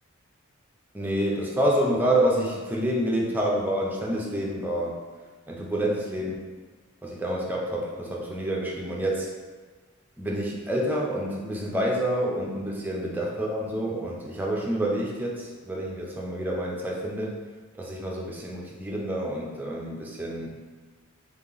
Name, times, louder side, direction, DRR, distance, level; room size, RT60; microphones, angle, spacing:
voice 1, 0.9-5.0 5.5-6.4 7.0-9.3 10.2-17.4 17.8-20.5, right 1 dB, 10° right, -3 dB, 0.5 m, -28 dB
3.7 x 2.9 x 3.8 m, 1.5 s
head